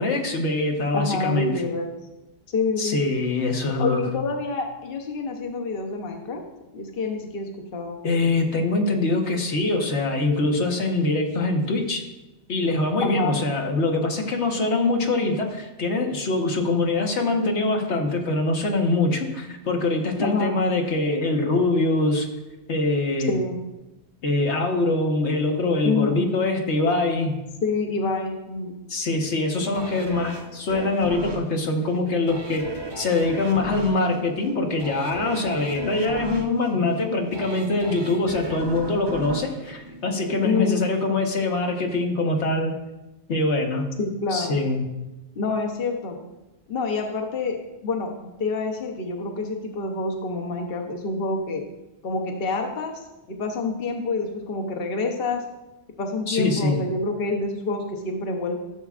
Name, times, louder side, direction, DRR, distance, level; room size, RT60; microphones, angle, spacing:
voice 1, 0.0-1.5 2.8-4.1 8.0-12.1 12.5-22.3 22.7-23.3 24.2-27.4 28.9-42.8 43.3-43.9 44.3-44.8 56.3-56.8, left 2 dB, 85° left, 2 dB, 1.5 m, -23 dB
voice 2, 0.9-1.9 2.5-3.0 3.8-6.4 6.7-8.0 13.0-13.4 20.2-20.6 23.3-23.6 25.8-26.2 27.6-28.8 40.4-40.8 44.0-44.5 45.4-46.2 46.7-47.6 47.8-51.6 52.0-53.0 53.3-55.4 56.0-58.6, left 3 dB, 60° left, 2 dB, 1.1 m, -27 dB
sound 1, 29.7-40.7 41.1-41.2, right 1 dB, 25° right, 0.8 m, -37 dB
14.0 x 7.0 x 2.5 m, 1.0 s
omnidirectional pair, 1.1 m